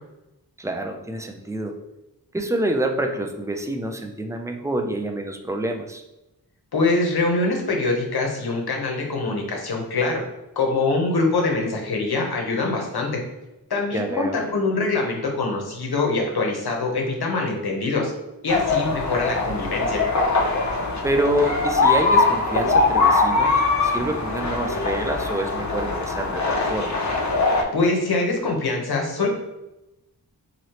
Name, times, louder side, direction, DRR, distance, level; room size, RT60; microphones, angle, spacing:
voice 1, 0.6-1.8 2.3-6.0 13.9-14.4 21.0-27.0, right 1 dB, 10° right, 4 dB, 0.3 m, -27 dB
voice 2, 6.7-10.2 10.6-13.2 13.7-18.1 18.4-20.0 27.7-29.3, left 3 dB, 80° left, 1 dB, 0.8 m, -24 dB
sound 1, 18.5-27.6, left 3 dB, 50° left, 0.5 m, -22 dB
3.0 x 2.7 x 2.8 m, 0.95 s
wide cardioid pair, 65°, 37 cm